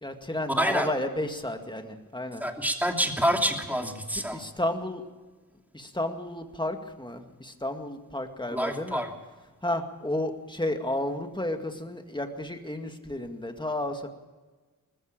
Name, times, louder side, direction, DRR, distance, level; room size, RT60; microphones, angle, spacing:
voice 1, 0.0-2.4 4.1-5.0 5.7-9.1 9.6-14.1, left 1 dB, 15° left, 5 dB, 2.1 m, -32 dB
voice 2, 0.6-0.9 2.4-4.4 8.5-9.1, equal, 5° right, 3 dB, 2.9 m, -27 dB
19.5 x 15.5 x 8.8 m, 1.3 s
wide cardioid pair, 60°, 35 cm